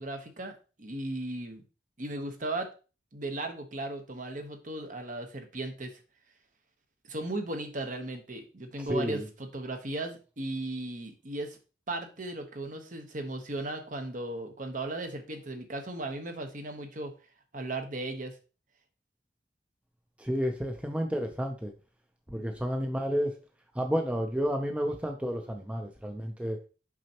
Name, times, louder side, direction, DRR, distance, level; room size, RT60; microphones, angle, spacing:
voice 1, 0.0-1.6 2.0-2.7 3.1-5.9 7.1-11.6 11.9-17.1 17.5-18.3, right 2 dB, 50° right, 5 dB, 1.1 m, -36 dB
voice 2, 8.8-9.3 20.2-21.7 22.3-23.3 23.7-26.6, equal, 5° right, 3 dB, 0.6 m, -31 dB
6.1 x 5.4 x 2.9 m, 0.34 s
head